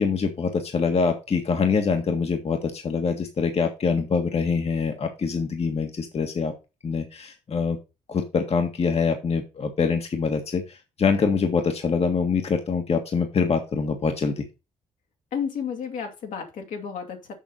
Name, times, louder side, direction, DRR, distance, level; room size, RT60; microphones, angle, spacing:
voice 1, 0.0-6.5 6.8-7.8 8.1-14.4, left 5 dB, 45° left, 5 dB, 1.7 m, -24 dB
voice 2, 15.3-17.3, left 7 dB, 70° left, 4 dB, 2.4 m, -32 dB
7.3 x 6.0 x 5.4 m, 0.28 s
hypercardioid pair, 45°, 14 cm